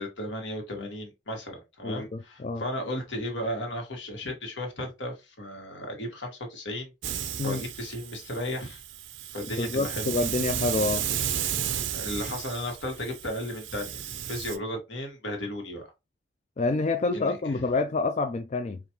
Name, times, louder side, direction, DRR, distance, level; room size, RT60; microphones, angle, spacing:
voice 1, 0.0-6.9 7.4-8.8 9.3-10.2 11.9-15.9 17.1-17.6, left 1 dB, 75° left, 1.5 m, -35 dB
voice 2, 1.8-2.6 7.4-7.6 9.6-11.1 16.6-18.8, left 3 dB, 35° left, 0.4 m, -27 dB
Hiss, 7.0-14.6, right 9 dB, 85° right, 0.6 m, -33 dB
5.0 x 2.4 x 2.9 m
head